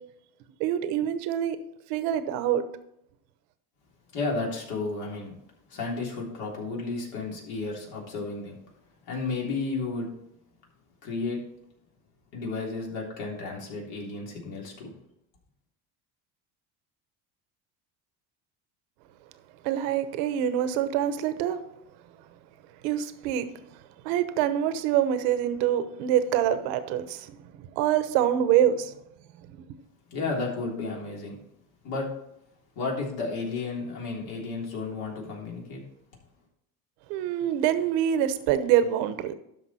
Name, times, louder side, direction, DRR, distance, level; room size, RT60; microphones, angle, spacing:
voice 1, 0.6-1.6 1.9-2.6 19.6-21.6 22.8-23.5 24.0-28.9 29.5-29.8 37.1-39.3, right 10 dB, 85° right, 0.9 m, -25 dB
voice 2, 4.1-5.3 5.7-8.6 9.1-10.1 11.0-11.4 12.3-14.9 30.1-31.3 31.8-32.1 32.7-35.8, left 3 dB, 70° left, 3.3 m, -32 dB
12.5 x 5.2 x 4.2 m
cardioid pair, 120°, 39 cm